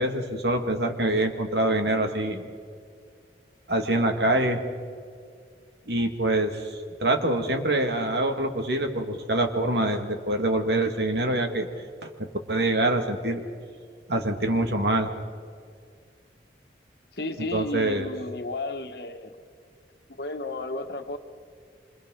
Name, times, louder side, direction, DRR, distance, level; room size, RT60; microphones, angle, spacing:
voice 1, 0.0-2.4 3.7-4.6 5.9-11.7 12.0-13.4 14.1-15.1 17.5-18.1, right 1 dB, 70° right, 4 dB, 2.1 m, -25 dB
voice 2, 17.1-19.4 20.1-21.2, left 2 dB, 65° left, 5 dB, 1.5 m, -33 dB
26.5 x 26.5 x 3.9 m, 2.1 s
head